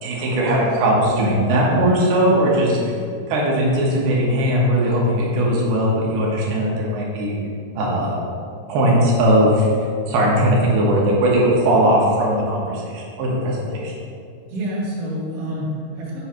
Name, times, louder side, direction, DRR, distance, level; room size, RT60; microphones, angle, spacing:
voice 1, 0.0-2.8 3.3-7.4 7.8-8.2 8.7-9.7 10.1-13.9, right 1 dB, 70° right, -4 dB, 2.8 m, -19 dB
voice 2, 14.5-16.2, equal, 55° right, -7 dB, 1.5 m, -27 dB
8.4 x 3.1 x 5.7 m, 2.4 s
omnidirectional pair, 5.0 m